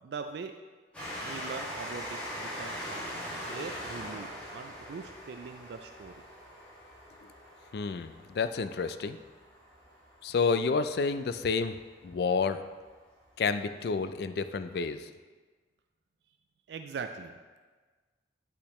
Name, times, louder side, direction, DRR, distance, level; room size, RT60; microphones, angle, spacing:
voice 1, 0.0-0.6 1.2-3.1 3.4-6.2 16.7-17.3, right 5 dB, 65° right, 6 dB, 0.3 m, -41 dB
Train, 0.9-12.1 12.8-12.9 13.2-13.3, equal, 5° left, 2.1 m, -42 dB
voice 2, 7.7-9.2 10.2-11.7 12.0-12.6 13.4-15.1, left 4 dB, 60° left, 11 dB, 0.3 m, -29 dB
8.2 x 5.7 x 3.1 m, 1.4 s
head